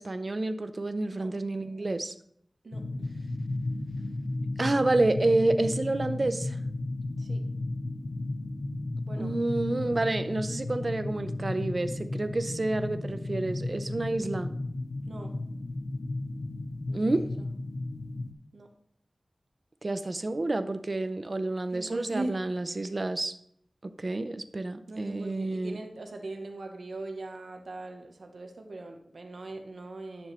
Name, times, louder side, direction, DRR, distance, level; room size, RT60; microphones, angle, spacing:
voice 1, 0.0-2.1 4.6-6.6 9.2-14.5 16.9-17.3 19.8-23.3 23.8-25.8, right 2 dB, 45° right, 10 dB, 0.7 m, -29 dB
sound 1, 2.7-18.3, left 2 dB, 65° left, 0.8 m, -34 dB
voice 2, 16.9-17.5 18.5-18.7 21.7-22.4 24.9-30.3, right 2 dB, 85° right, 3 dB, 1.1 m, -40 dB
10.5 x 7.1 x 3.1 m, 0.68 s
wide cardioid pair, 80°, 0 cm